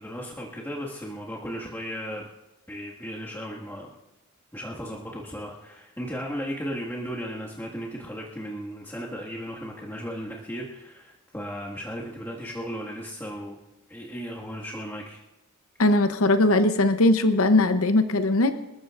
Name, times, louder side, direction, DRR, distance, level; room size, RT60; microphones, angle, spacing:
voice 1, 0.0-2.3 2.7-3.9 4.5-13.6 13.9-15.2, equal, 10° left, -5 dB, 1.8 m, -35 dB
voice 2, 15.8-18.5, left 2 dB, 75° left, 9 dB, 0.8 m, -20 dB
28.0 x 14.0 x 2.5 m, 0.97 s
head